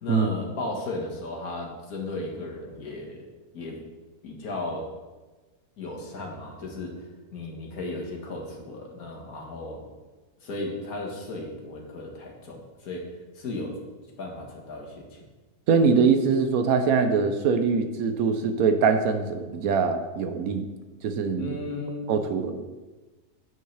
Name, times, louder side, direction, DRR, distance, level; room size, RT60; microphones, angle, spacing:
voice 1, 0.0-3.3 3.5-3.8 4.2-4.9 5.8-9.8 10.4-13.1 13.4-13.8 14.0-15.2 21.4-22.1, left 2 dB, 65° left, -1 dB, 1.8 m, -35 dB
voice 2, 15.7-20.7 21.0-21.6 22.1-22.7, right 5 dB, 70° right, 8 dB, 1.1 m, -23 dB
8.1 x 7.4 x 3.3 m, 1.2 s
omnidirectional pair, 1.7 m